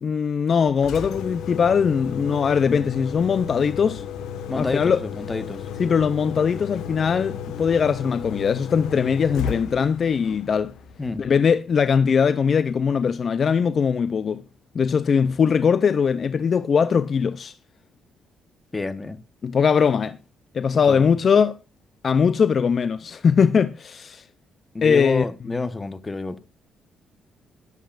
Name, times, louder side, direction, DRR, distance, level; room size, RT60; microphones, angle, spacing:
voice 1, 0.0-4.0 4.5-5.0 5.8-10.7 11.2-14.4 14.7-17.5 19.4-20.2 20.5-21.6 22.0-24.2 24.8-25.3, left 6 dB, 50° left, 0.5 m, -20 dB
Engine, 0.7-11.6, left 8 dB, 85° left, 1.3 m, -34 dB
voice 2, 4.5-5.6 11.0-11.2 18.7-19.2 20.8-21.1 24.7-26.4, left 3 dB, 20° left, 1.1 m, -29 dB
22.0 x 8.2 x 2.5 m
cardioid pair, 90°, 0 cm